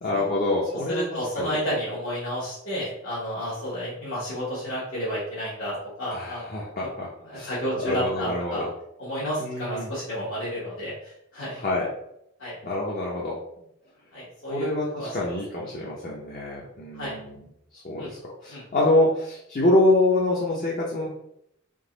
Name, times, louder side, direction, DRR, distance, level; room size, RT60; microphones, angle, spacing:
voice 1, 0.0-1.0 1.4-1.6 6.1-7.1 7.3-7.5 7.8-8.7 9.4-9.9 11.6-11.9 12.6-13.4 14.5-17.3 17.7-21.1, left 2 dB, 40° left, -4 dB, 0.7 m, -25 dB
voice 2, 0.9-6.4 6.8-6.9 7.2-8.7 9.0-11.6 12.4-12.6 14.1-14.7 15.0-15.4 16.9-17.1 18.0-18.1 18.5-18.6, equal, 60° left, -9 dB, 1.3 m, -31 dB
3.8 x 3.0 x 3.9 m, 0.78 s
head